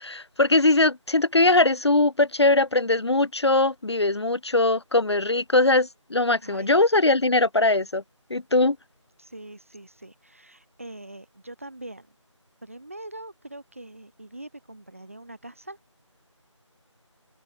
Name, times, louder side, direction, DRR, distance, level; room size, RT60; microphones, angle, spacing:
voice 1, 0.0-8.0 8.3-8.8, left 2 dB, 60° left, 0.6 m, -21 dB
voice 2, 6.4-7.1 9.2-12.1 12.6-15.8, right 1 dB, 25° right, 1.0 m, -43 dB
open air
figure-of-eight pair, 170°, 16 cm